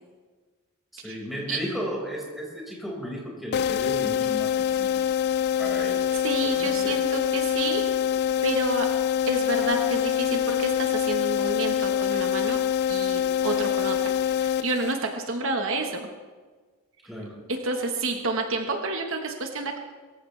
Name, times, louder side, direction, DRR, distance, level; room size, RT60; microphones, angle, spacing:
voice 1, 0.9-5.0 5.6-6.1 6.4-7.0 17.0-17.4, equal, ahead, -4 dB, 5.4 m, -35 dB
sound 1, 3.5-15.2, left 9 dB, 50° left, 0.3 m, -25 dB
voice 2, 6.1-7.8 8.4-8.9 9.3-12.6 12.9-14.1 14.4-16.1 17.5-19.8, right 2 dB, 65° right, 3 dB, 1.5 m, -29 dB
23.0 x 15.0 x 3.4 m, 1.4 s
head